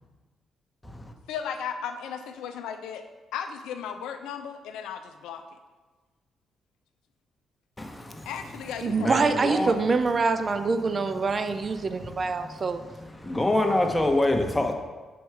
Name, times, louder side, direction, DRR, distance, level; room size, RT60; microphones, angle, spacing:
voice 1, 1.3-3.0 3.3-5.4 8.3-9.6, left 7 dB, 80° left, 7 dB, 0.4 m, -36 dB
voice 2, 7.8-8.3 9.0-9.7 13.2-14.7, left 1 dB, 15° left, 4 dB, 1.0 m, -25 dB
voice 3, 8.8-12.8, right 4 dB, 45° right, 9 dB, 0.4 m, -25 dB
5.4 x 4.6 x 4.7 m, 1.3 s
hypercardioid pair, 45°, 0 cm